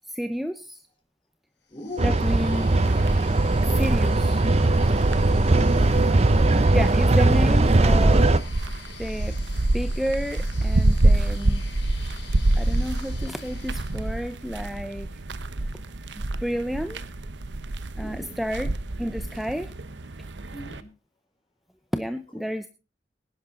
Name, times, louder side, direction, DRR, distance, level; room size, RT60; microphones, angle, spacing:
voice 1, 0.1-0.8 2.0-2.7 3.7-4.4 6.7-8.3 9.0-9.3 9.7-11.6 12.5-15.1 16.1-17.0 18.0-18.7 19.0-19.7 21.9-22.7, equal, ahead, 10 dB, 0.6 m, -30 dB
sound 1, 1.7-14.5, left 3 dB, 80° left, 7.3 m, -45 dB
voice 2, 1.7-2.4 5.5-5.8 17.9-18.4 20.5-20.9 22.3-22.4, left 1 dB, 30° left, 5 dB, 3.9 m, -39 dB
sound 2, 2.0-8.4, right 2 dB, 35° right, 0.7 m, -20 dB
sound 3, 2.3-20.8, right 1 dB, 85° right, 1.0 m, -27 dB
18.5 x 10.5 x 3.8 m, 0.31 s
head